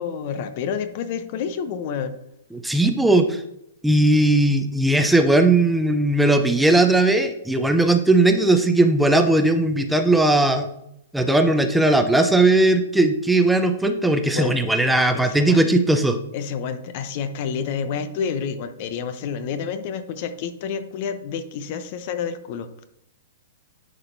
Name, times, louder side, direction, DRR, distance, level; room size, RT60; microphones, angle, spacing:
voice 1, 0.0-2.1 14.3-14.6 15.1-15.7 16.3-22.8, left 7 dB, 45° left, 10 dB, 0.7 m, -29 dB
voice 2, 2.5-3.4 3.8-10.7 11.1-16.2, right 2 dB, 5° right, 6 dB, 0.6 m, -18 dB
10.5 x 4.2 x 2.7 m, 0.79 s
figure-of-eight pair, 110°, 0 cm